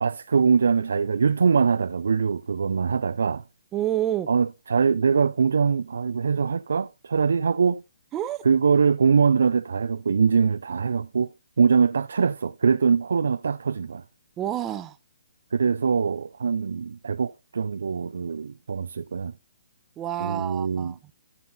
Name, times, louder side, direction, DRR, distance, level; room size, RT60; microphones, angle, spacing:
voice 1, 0.0-3.4 4.3-7.8 8.5-11.3 11.6-14.0 15.5-19.3 20.2-20.9, right 5 dB, 80° right, 0.4 m, -23 dB
voice 2, 3.7-4.3 8.1-8.4 14.4-15.0 20.0-21.1, right 12 dB, 20° right, 0.7 m, -28 dB
13.5 x 5.7 x 4.0 m
hypercardioid pair, 150°, 0 cm